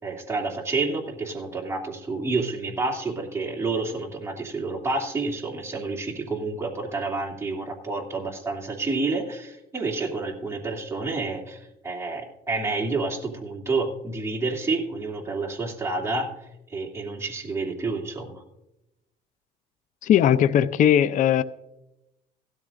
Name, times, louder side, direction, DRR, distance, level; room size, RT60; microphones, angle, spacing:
voice 1, 0.0-16.3 16.7-18.4, right 3 dB, 15° right, -1 dB, 2.6 m, -29 dB
voice 2, 20.0-21.4, left 10 dB, 50° left, 14 dB, 0.5 m, -19 dB
16.5 x 13.0 x 2.5 m, 0.90 s
cardioid pair, 110°, 17 cm